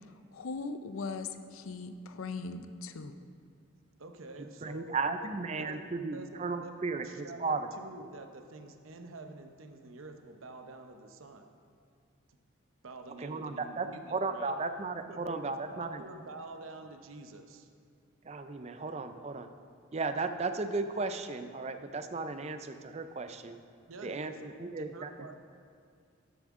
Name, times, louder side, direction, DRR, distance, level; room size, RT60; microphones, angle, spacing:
voice 1, 0.3-3.2, left 4 dB, 80° left, 10 dB, 0.5 m, -39 dB
voice 2, 4.0-5.8 6.1-11.5 12.3-12.4 12.8-14.5 15.1-17.7 23.9-25.3, right 2 dB, 75° right, 6 dB, 0.8 m, -48 dB
voice 3, 4.6-7.7 13.2-16.0 18.2-19.5 19.9-23.6 24.0-25.1, right 3 dB, 30° right, 9 dB, 0.4 m, -35 dB
13.0 x 7.3 x 3.7 m, 2.2 s
head